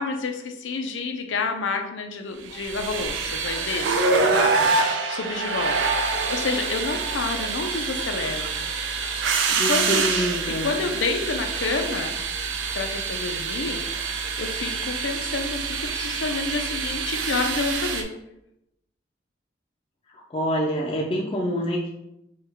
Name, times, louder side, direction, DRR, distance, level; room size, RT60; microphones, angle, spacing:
voice 1, 0.0-4.5 4.8-8.5 9.5-10.0 10.5-12.2 12.7-13.8 14.4-18.1, left 4 dB, 90° left, 5 dB, 0.5 m, -29 dB
sound 1, 2.5-18.0, right 4 dB, 85° right, 0.5 m, -26 dB
voice 2, 9.6-10.7 20.1-21.9, equal, 30° left, -2 dB, 0.4 m, -26 dB
4.6 x 2.3 x 3.5 m, 0.84 s
head